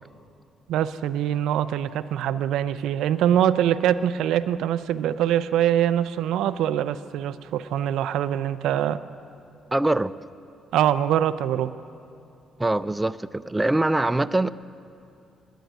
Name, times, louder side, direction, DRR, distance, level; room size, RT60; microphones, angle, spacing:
voice 1, 0.7-9.0 10.7-11.7, right 10 dB, 85° right, 13 dB, 0.4 m, -23 dB
voice 2, 9.7-10.1 12.6-14.5, right 2 dB, 15° right, 15 dB, 0.3 m, -23 dB
10.0 x 9.8 x 9.3 m, 2.7 s
cardioid pair, 90°, 0 cm